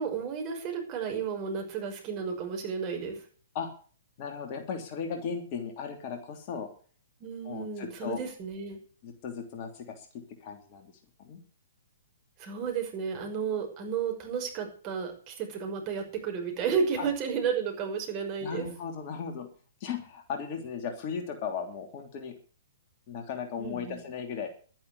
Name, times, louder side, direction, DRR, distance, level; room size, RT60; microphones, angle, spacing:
voice 1, 0.0-3.2 7.2-8.8 12.4-18.7 23.6-24.0, right 6 dB, 30° right, 2 dB, 6.1 m, -32 dB
voice 2, 4.2-6.7 7.4-8.2 9.0-10.9 11.2-11.4 17.0-17.1 18.4-19.5 19.8-22.4 23.1-24.5, left 6 dB, 35° left, 4 dB, 3.2 m, -36 dB
12.0 x 10.5 x 8.3 m, 0.42 s
figure-of-eight pair, 120°, 0 cm